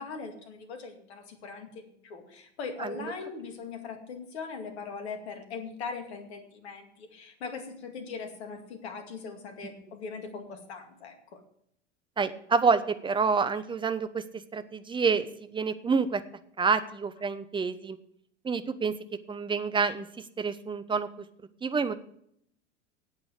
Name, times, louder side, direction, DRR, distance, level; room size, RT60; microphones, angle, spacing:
voice 1, 0.0-11.4, left 5 dB, 65° left, 5 dB, 2.3 m, -40 dB
voice 2, 2.8-3.1 12.2-14.2 14.5-16.2 16.6-18.0 18.4-18.9 19.3-21.1 21.6-21.9, right 5 dB, 15° right, 12 dB, 0.9 m, -28 dB
8.5 x 8.5 x 7.9 m, 0.69 s
figure-of-eight pair, 85°, 35 cm